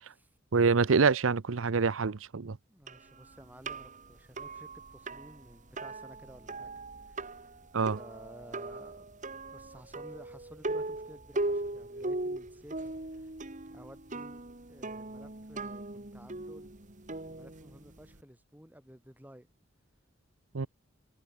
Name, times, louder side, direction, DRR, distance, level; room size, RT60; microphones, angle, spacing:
voice 1, 0.5-2.6 7.7-8.0 20.5-20.7, right 5 dB, 90° right, 0.7 m, -26 dB
voice 2, 2.7-6.7 7.1-7.5 7.9-9.1 9.5-12.8 13.1-13.3 13.7-14.4 14.7-16.8 17.2-19.5, equal, 10° right, 7.6 m, -53 dB
sound 1, 2.9-18.2, right 2 dB, 40° right, 2.5 m, -39 dB
head